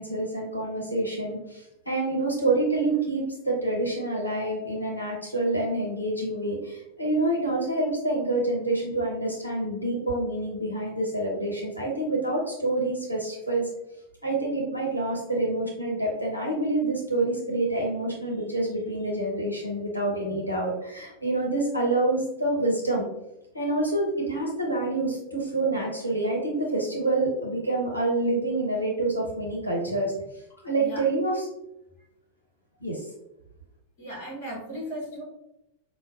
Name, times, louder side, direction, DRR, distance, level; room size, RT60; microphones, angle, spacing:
voice 1, 0.0-13.7 14.2-23.1 23.5-30.1 30.6-31.5 32.8-33.1, right 2 dB, 85° left, -3 dB, 0.7 m, -27 dB
voice 2, 30.5-31.1 34.0-35.2, equal, 50° left, -5 dB, 1.2 m, -37 dB
5.0 x 2.2 x 2.4 m, 0.88 s
figure-of-eight pair, 90°, 0 cm